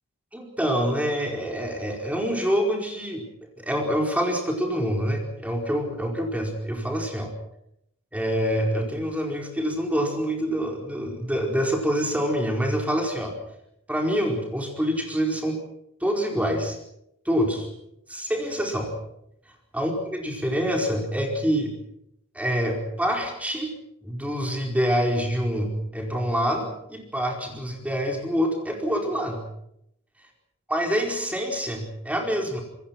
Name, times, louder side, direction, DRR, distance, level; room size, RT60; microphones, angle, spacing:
voice 1, 0.3-3.2 3.6-7.3 8.1-13.3 13.9-15.6 16.0-16.8 17.2-17.7 18.1-18.9 19.7-21.7 22.3-23.7 24.0-29.4 30.7-32.6, equal, 5° right, 1 dB, 4.8 m, -26 dB
27.0 x 21.5 x 6.1 m, 0.78 s
head